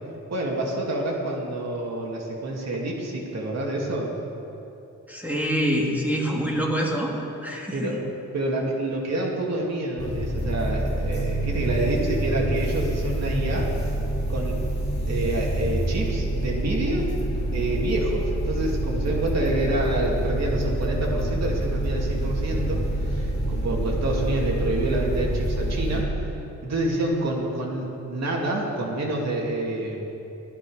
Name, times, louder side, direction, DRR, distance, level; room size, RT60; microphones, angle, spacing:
voice 1, 0.3-4.1 7.7-8.0 8.3-13.7 14.3-14.6 15.1-17.1 17.5-26.3 26.6-30.1, right 2 dB, 60° right, -2 dB, 2.5 m, -27 dB
voice 2, 5.1-7.2 7.4-8.0, equal, 5° right, -2 dB, 2.6 m, -25 dB
sound 1, 10.0-26.0, right 1 dB, 35° left, 3.7 m, -27 dB
17.5 x 11.5 x 5.0 m, 2.9 s
cardioid pair, 105°, 30 cm